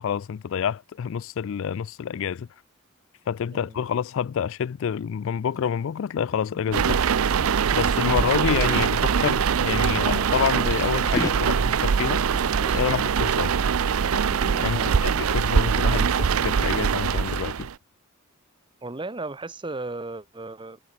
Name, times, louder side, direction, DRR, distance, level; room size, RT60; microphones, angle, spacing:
voice 1, 0.0-2.5 3.3-7.1 7.7-12.3 12.7-13.5 14.6-17.7, left 7 dB, 65° left, 0.4 m, -28 dB
sound 1, 5.5-5.7 5.9-8.7 9.5-10.8 11.1-13.7 13.9-14.6 15.1-15.3, left 1 dB, 15° left, 0.7 m, -37 dB
sound 2, 6.7-17.7, right 6 dB, 85° right, 0.5 m, -23 dB
voice 2, 8.0-8.4 14.7-15.0 18.8-20.8, right 2 dB, 25° right, 1.0 m, -35 dB
head